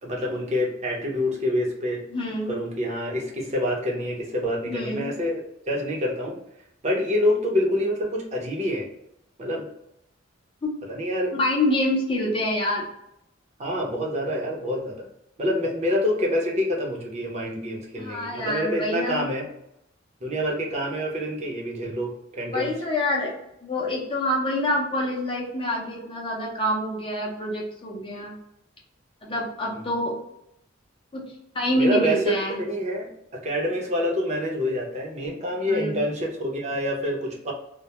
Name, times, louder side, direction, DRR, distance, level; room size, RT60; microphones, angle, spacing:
voice 1, 0.0-2.0 2.5-6.4 6.8-8.9 9.4-9.7 10.9-11.3 13.6-15.1 15.4-19.5 20.2-22.7 29.7-30.0 31.8-37.5, equal, 35° right, -2 dB, 0.6 m, -27 dB
voice 2, 2.1-2.6 4.6-5.1 10.6-10.7 11.4-12.9 18.0-19.3 22.5-23.3 23.6-28.3 29.2-30.2 31.1-31.2 31.5-32.6 35.7-36.0, left 1 dB, 25° left, -2 dB, 0.5 m, -26 dB
2.1 x 2.0 x 2.8 m, 0.78 s
head